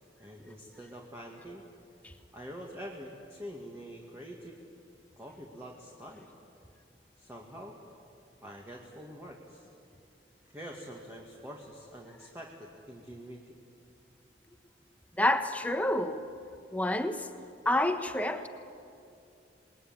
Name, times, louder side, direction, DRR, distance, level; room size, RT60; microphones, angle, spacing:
voice 1, 0.2-1.7 2.3-4.6 5.2-6.3 7.2-7.8 8.4-9.7 10.5-13.6, equal, 15° right, 2.2 m, -45 dB
voice 2, 15.2-16.2 16.7-17.3 17.6-18.5, left 1 dB, 10° left, 1.2 m, -28 dB
27.5 x 20.5 x 9.6 m
head